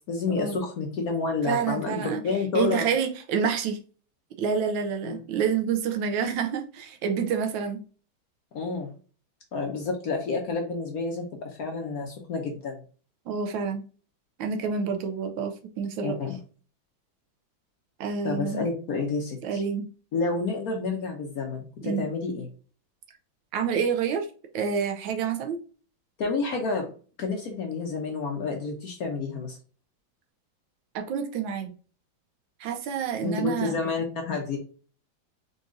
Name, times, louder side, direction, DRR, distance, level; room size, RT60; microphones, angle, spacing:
voice 1, 0.1-2.9 5.0-5.2 8.5-8.9 9.5-12.8 16.0-16.4 18.2-19.6 20.1-22.5 26.2-26.9 27.2-29.6 33.2-34.6, left 4 dB, 60° left, 1.0 m, -29 dB
voice 2, 1.5-2.2 2.5-3.8 4.4-7.8 13.3-13.8 14.4-16.1 18.0-18.7 19.4-19.9 21.8-22.0 23.5-24.3 24.5-25.6 30.9-31.7 32.6-33.8, right 6 dB, 75° right, 1.4 m, -28 dB
4.0 x 3.9 x 2.5 m
omnidirectional pair, 2.2 m